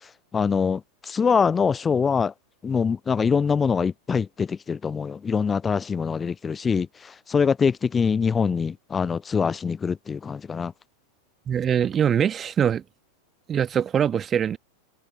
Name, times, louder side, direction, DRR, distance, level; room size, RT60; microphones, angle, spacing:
voice 1, 0.3-2.3 2.6-10.7, left 6 dB, 15° left, 0.4 m, -24 dB
voice 2, 11.5-12.8 13.5-14.6, right 8 dB, 25° right, 1.6 m, -23 dB
figure-of-eight pair, 90°, 0 cm